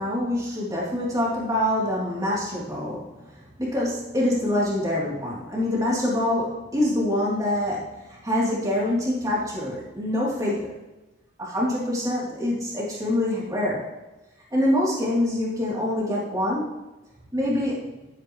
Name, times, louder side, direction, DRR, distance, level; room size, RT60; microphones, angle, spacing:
voice 1, 0.0-3.2 3.6-10.8 11.4-13.8 14.5-16.7 17.3-18.0, left 1 dB, 15° right, -6 dB, 3.4 m, -25 dB
12.0 x 9.8 x 3.3 m, 1.1 s
head